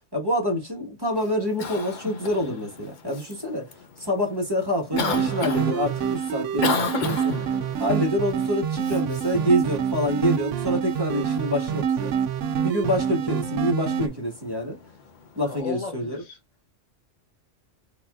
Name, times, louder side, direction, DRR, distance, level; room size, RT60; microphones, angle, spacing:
voice 1, 0.1-3.7 4.0-7.3 7.8-12.1 12.6-14.8 15.4-16.2, equal, 20° right, 1.5 m, -26 dB
Cough, 1.1-15.6, left 5 dB, 45° left, 0.7 m, -36 dB
sound 1, 4.9-14.1, right 7 dB, 75° right, 0.9 m, -26 dB
voice 2, 15.4-16.4, left 5 dB, 75° left, 1.3 m, -35 dB
4.0 x 3.3 x 2.3 m
omnidirectional pair, 1.3 m